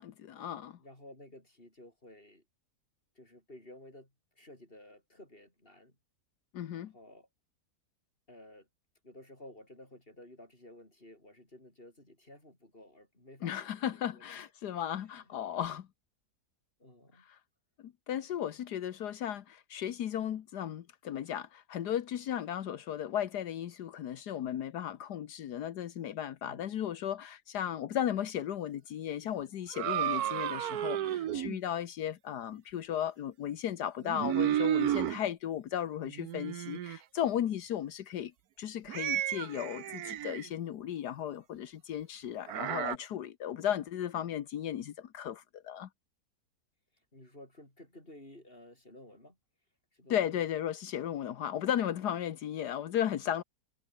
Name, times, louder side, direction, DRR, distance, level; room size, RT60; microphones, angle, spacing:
voice 1, 0.0-0.8 6.5-6.9 13.4-15.9 17.2-17.4 17.8-38.3 38.6-45.9 50.1-53.4, left 10 dB, 80° left, 1.6 m, -35 dB
voice 2, 0.8-2.4 3.1-5.9 6.7-7.3 8.3-8.7 9.0-14.5 14.7-14.8 16.8-17.3 26.4-26.8 31.2-31.5 47.1-49.4 49.9-50.4, left 1 dB, 35° left, 6.5 m, -54 dB
sound 1, 29.7-31.6 34.0-35.2 36.0-37.0 38.9-40.5 42.5-43.0, right 11 dB, 70° right, 1.3 m, -32 dB
omnidirectional pair, 1.7 m